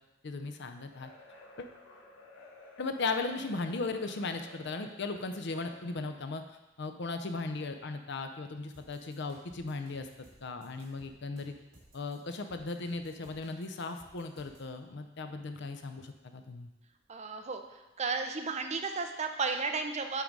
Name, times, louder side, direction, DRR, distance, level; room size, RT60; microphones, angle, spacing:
voice 1, 0.2-1.1 1.6-1.7 2.8-6.4 6.8-10.1 10.4-11.5 11.9-16.7, left 3 dB, 60° left, 7 dB, 0.6 m, -37 dB
sound 1, 0.9-6.3, left 2 dB, 75° left, 1.4 m, -54 dB
sound 2, 8.7-14.7, right 1 dB, 65° right, 2.5 m, -59 dB
voice 2, 17.1-17.6 18.0-20.2, right 4 dB, 35° right, 5 dB, 0.6 m, -33 dB
9.0 x 3.8 x 4.7 m, 1.0 s
head